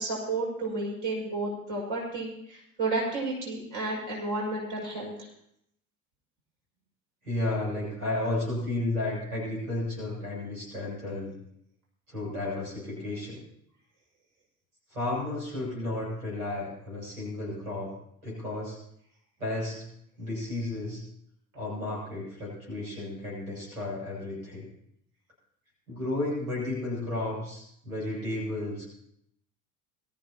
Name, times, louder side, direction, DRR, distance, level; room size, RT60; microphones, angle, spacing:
voice 1, 0.0-5.1, right 2 dB, 45° right, -3 dB, 6.5 m, -32 dB
voice 2, 7.2-11.3 12.1-13.4 14.9-17.9 18.2-18.8 19.4-19.8 20.2-21.0 21.5-24.6 25.9-28.9, left 2 dB, 85° right, -5 dB, 7.8 m, -33 dB
22.5 x 14.0 x 3.0 m, 0.73 s
figure-of-eight pair, 65°, 43 cm